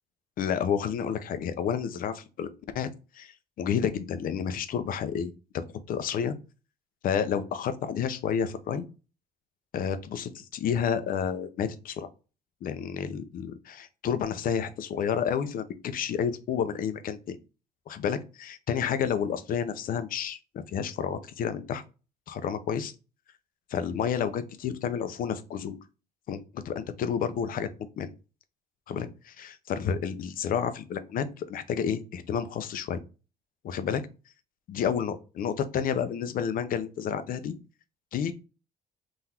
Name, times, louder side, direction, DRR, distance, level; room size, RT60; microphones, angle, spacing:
voice 1, 0.4-2.5 2.7-2.9 3.1-3.3 3.6-6.3 7.0-8.9 9.7-12.1 12.6-17.4 17.9-20.4 20.7-21.8 22.3-22.9 23.7-25.8 26.3-27.7 28.0-28.1 28.9-33.0 33.6-34.0 34.7-37.5 38.1-38.3, left 8 dB, 55° left, 11 dB, 0.6 m, -30 dB
3.9 x 2.6 x 4.3 m, 0.32 s
cardioid pair, 110°, 17 cm